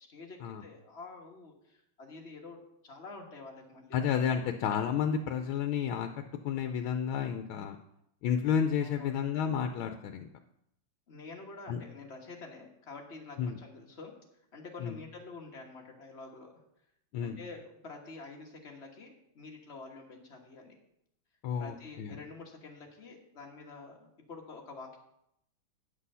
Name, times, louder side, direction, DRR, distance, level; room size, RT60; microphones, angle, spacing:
voice 1, 0.1-2.6 2.8-4.0 8.8-9.2 11.1-14.1 14.5-16.6 17.2-20.8 21.6-25.0, left 3 dB, 35° left, 1 dB, 1.5 m, -48 dB
voice 2, 3.9-7.8 8.2-10.3 11.7-11.8 13.4-13.6 14.8-15.0 17.1-17.4 21.4-22.1, left 7 dB, 90° left, 6 dB, 1.5 m, -31 dB
9.6 x 6.2 x 5.5 m, 0.77 s
omnidirectional pair, 2.2 m